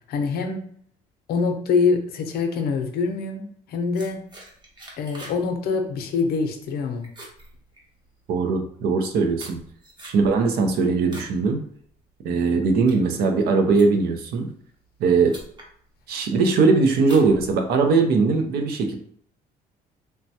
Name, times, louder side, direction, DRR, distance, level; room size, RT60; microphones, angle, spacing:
voice 1, 0.1-0.6 1.3-4.2 5.0-7.1, left 4 dB, 70° left, 4 dB, 0.6 m, -24 dB
sound 1, 3.9-5.4 5.7-6.1 6.5-6.8 7.0-8.2 8.8-11.4 11.8-12.1 12.6-14.2 14.9-15.0 15.3-15.7 16.2-16.6 17.0-18.0, right 1 dB, 25° right, 0.9 m, -44 dB
voice 2, 8.3-9.6 10.0-11.6 12.2-14.5 15.0-15.4 16.1-19.0, right 4 dB, 70° right, 5 dB, 0.6 m, -20 dB
3.3 x 2.2 x 2.7 m, 0.63 s
cardioid pair, 110°, 17 cm